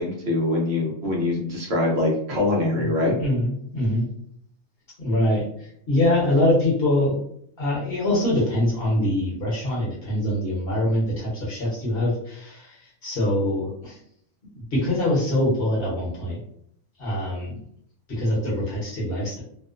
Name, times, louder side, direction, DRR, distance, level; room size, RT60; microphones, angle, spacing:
voice 1, 0.0-3.2, left 2 dB, 60° right, -2 dB, 0.9 m, -23 dB
voice 2, 3.2-4.1 5.0-7.2 7.6-14.0 14.5-16.4 17.0-17.5 18.1-19.4, left 1 dB, 50° left, -5 dB, 1.0 m, -24 dB
2.7 x 2.0 x 2.4 m, 0.68 s
omnidirectional pair, 1.4 m